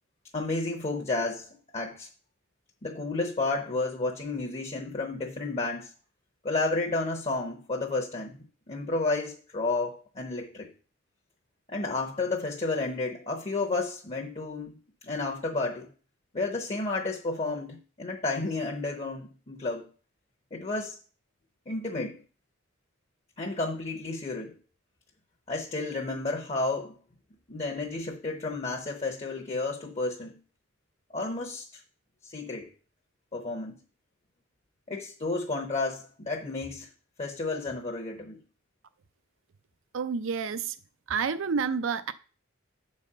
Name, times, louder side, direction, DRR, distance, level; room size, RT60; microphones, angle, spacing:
voice 1, 0.3-2.1 2.8-5.9 6.4-10.7 11.7-14.8 15.0-15.9 16.3-19.9 20.5-21.0 21.7-22.2 23.4-24.6 25.5-27.0 27.5-30.4 31.1-31.8 32.2-32.7 33.3-33.8 34.9-36.9 37.2-38.4, left 3 dB, 35° left, 0.8 m, -31 dB
voice 2, 39.9-40.8 41.1-42.1, right 5 dB, 70° right, 0.5 m, -29 dB
8.2 x 4.2 x 6.5 m
head